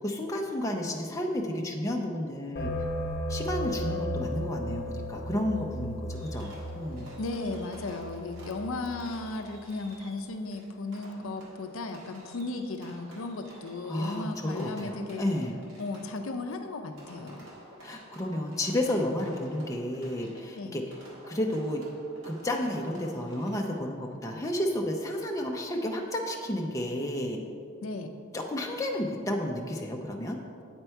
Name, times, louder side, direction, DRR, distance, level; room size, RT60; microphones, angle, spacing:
voice 1, 0.0-2.7 3.3-7.1 13.9-15.6 17.8-20.9 21.3-21.9 22.2-27.4 28.3-30.4, left 1 dB, 15° left, 0 dB, 0.5 m, -31 dB
sound 1, 2.6-9.1, left 1 dB, 45° left, 0.8 m, -35 dB
Fireworks, 6.1-23.9, right 1 dB, 65° right, 1.6 m, -52 dB
voice 2, 7.2-15.3 15.8-17.4 20.6-20.8 27.8-28.1, left 2 dB, 70° left, 6 dB, 0.5 m, -35 dB
8.1 x 4.4 x 4.5 m, 2.4 s
head